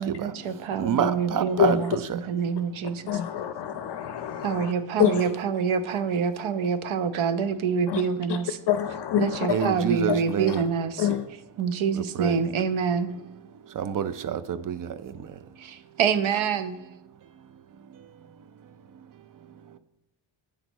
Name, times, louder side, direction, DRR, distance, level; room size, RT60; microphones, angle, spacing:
voice 1, 0.0-3.2 4.4-8.6 9.2-13.2 15.6-16.8, right 6 dB, 80° right, 12 dB, 0.8 m, -27 dB
voice 2, 0.8-2.2 9.5-10.6 12.2-12.4 13.8-14.9, right 7 dB, 45° right, 13 dB, 0.5 m, -27 dB
voice 3, 3.1-4.7 5.0-5.3 7.9-8.0 8.3-8.4 8.7-9.7 10.1-10.2 10.5-10.6 11.0-11.3, left 10 dB, 60° left, 10 dB, 0.5 m, -26 dB
8.7 x 3.9 x 6.2 m, 0.97 s
cardioid pair, 115°, 48 cm